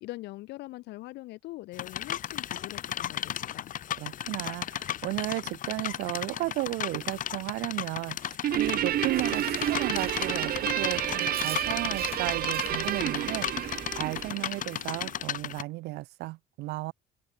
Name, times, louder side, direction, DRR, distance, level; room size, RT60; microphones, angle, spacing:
voice 1, 0.0-3.7, left 19 dB, 85° left, 2.3 m, -42 dB
sound 1, 1.7-15.6, left 10 dB, 50° left, 1.1 m, -35 dB
voice 2, 4.0-13.7 14.0-16.9, right 20 dB, 85° right, 0.8 m, -34 dB
Guitar, 8.4-15.1, right 12 dB, 60° right, 1.8 m, -30 dB
Chewing mastication, 8.5-14.3, right 6 dB, 35° right, 5.5 m, -45 dB
cardioid pair, 110°, 17 cm